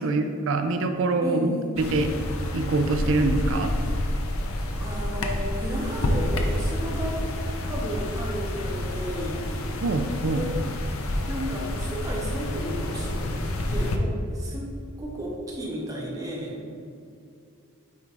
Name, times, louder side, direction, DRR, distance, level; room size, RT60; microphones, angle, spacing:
voice 1, 0.0-2.1 2.5-3.7 9.8-10.5, right 3 dB, 60° right, 7 dB, 0.4 m, -24 dB
voice 2, 1.2-1.7 4.8-7.3 7.6-9.4 10.3-10.6 11.3-13.3 13.6-16.6, equal, 15° right, -4 dB, 0.9 m, -33 dB
sound 1, 1.8-14.0, left 1 dB, 70° left, 0.6 m, -29 dB
8.4 x 4.6 x 2.5 m, 2.5 s
head